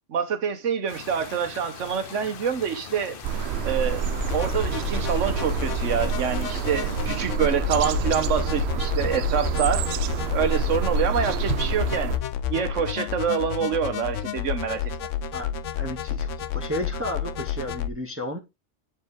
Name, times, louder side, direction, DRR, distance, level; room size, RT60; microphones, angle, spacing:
voice 1, 0.1-3.2 3.6-10.0 10.3-12.2 12.5-14.8, right 7 dB, 85° right, 1.4 m, -26 dB
sound 1, 0.9-7.3, left 7 dB, 50° left, 0.9 m, -41 dB
sound 2, 3.2-12.2, right 8 dB, 65° right, 0.8 m, -28 dB
sound 3, 4.2-17.9, left 9 dB, 85° left, 1.0 m, -30 dB
voice 2, 15.3-18.4, left 1 dB, 10° right, 1.0 m, -33 dB
9.7 x 4.5 x 3.6 m
omnidirectional pair, 1.2 m